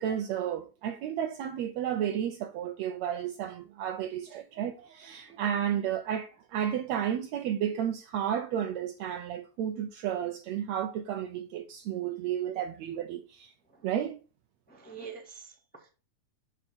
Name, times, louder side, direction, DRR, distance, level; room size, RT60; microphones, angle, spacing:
voice 1, 0.0-13.5 13.8-14.2, right 9 dB, 75° right, 1.9 m, -32 dB
voice 2, 14.7-15.9, right 6 dB, 5° left, 1.6 m, -46 dB
7.2 x 6.7 x 4.4 m
omnidirectional pair, 3.4 m